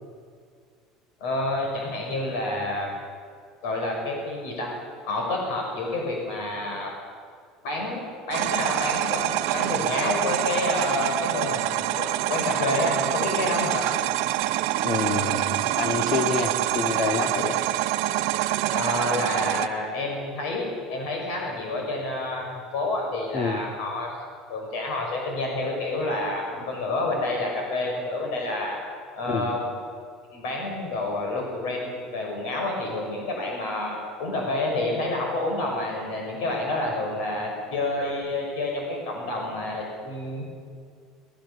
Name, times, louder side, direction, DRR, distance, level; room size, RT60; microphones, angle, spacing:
voice 1, 1.2-2.9 3.6-4.7 5.0-6.9 7.6-13.9 18.7-24.2 24.5-28.8 29.1-29.7 30.3-40.4, left 2 dB, 70° left, 0 dB, 6.2 m, -29 dB
sound 1, 8.3-19.7, right 15 dB, 65° right, 0.9 m, -26 dB
voice 2, 14.7-17.6 23.3-23.6 29.3-29.5, left 4 dB, 35° left, 5 dB, 2.1 m, -28 dB
24.0 x 20.5 x 7.2 m, 2.1 s
cardioid pair, 165°, 0 cm